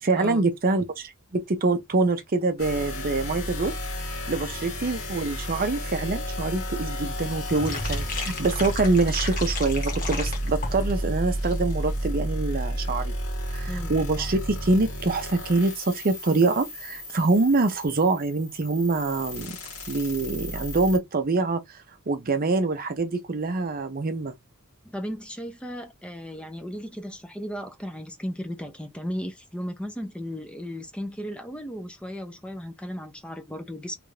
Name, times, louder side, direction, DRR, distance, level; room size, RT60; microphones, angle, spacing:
voice 1, 0.0-3.8 4.3-13.1 13.5-19.6 19.9-21.8 22.1-24.3, right 3 dB, 40° right, 0.6 m, -25 dB
sound 1, 2.6-21.0, equal, 75° left, 1.8 m, -32 dB
sound 2, 7.5-12.1 12.3-12.4 12.7-12.9 13.2-13.3, left 3 dB, 40° left, 1.3 m, -35 dB
voice 2, 13.7-14.3 24.8-34.0, equal, 5° left, 0.6 m, -35 dB
3.3 x 2.5 x 3.2 m
head